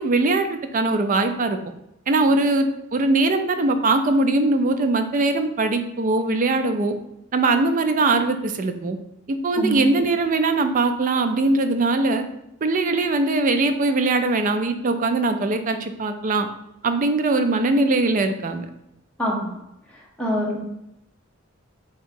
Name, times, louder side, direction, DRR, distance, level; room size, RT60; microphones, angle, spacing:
voice 1, 0.0-1.6 2.1-7.0 7.3-9.0 9.3-12.2 12.6-16.5 16.8-18.7, right 2 dB, 40° right, 8 dB, 0.4 m, -21 dB
voice 2, 19.2-19.5 20.2-20.6, equal, 5° left, -4 dB, 1.0 m, -24 dB
3.6 x 2.8 x 4.3 m, 0.84 s
head